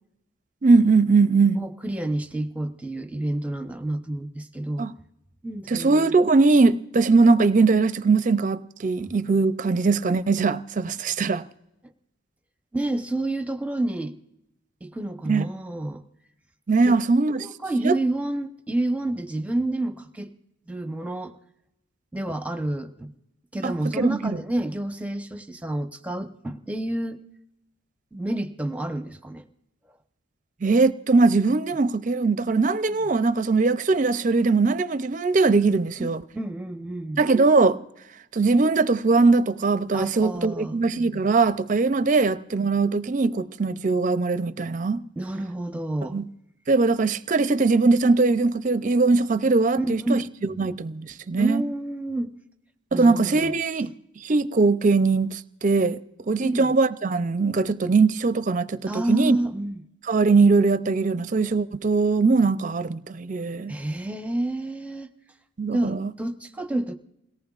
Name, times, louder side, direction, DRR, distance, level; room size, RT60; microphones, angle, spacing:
voice 1, 0.6-1.6 4.8-4.9 5.7-11.5 15.3-15.5 16.7-17.5 17.8-18.0 23.6-24.3 30.6-36.2 37.2-37.8 38.3-45.0 46.1-46.3 46.7-51.6 52.9-56.0 56.3-59.4 60.1-63.7 65.6-66.1, right 3 dB, 40° right, 0.5 m, -21 dB
voice 2, 1.6-4.9 5.4-6.1 12.7-14.1 14.8-16.0 16.8-16.9 17.4-20.3 20.7-21.4 22.1-23.1 23.5-27.2 28.1-29.4 36.0-36.1 36.3-37.2 39.9-40.8 45.2-46.2 49.8-50.3 51.4-52.3 52.9-53.5 56.4-56.7 58.9-59.8 63.7-65.1 65.7-67.0, right 1 dB, 5° right, 0.7 m, -29 dB
29.0 x 18.0 x 2.4 m
head